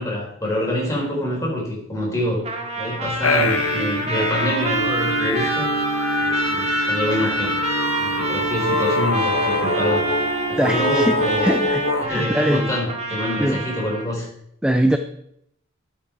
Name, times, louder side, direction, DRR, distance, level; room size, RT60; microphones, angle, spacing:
voice 1, 0.0-2.4 2.8-5.9 6.2-7.6 8.0-10.1 10.5-11.5 12.0-14.3, left 1 dB, 15° left, -4 dB, 4.4 m, -26 dB
Trumpet, 2.4-14.1, right 3 dB, 30° right, 1.7 m, -27 dB
sound 1, 3.2-12.1, left 2 dB, 65° left, 1.2 m, -24 dB
voice 2, 10.6-12.7 13.4-13.6 14.6-15.0, right 1 dB, 5° right, 7 dB, 0.4 m, -22 dB
12.5 x 7.6 x 4.6 m, 0.73 s
head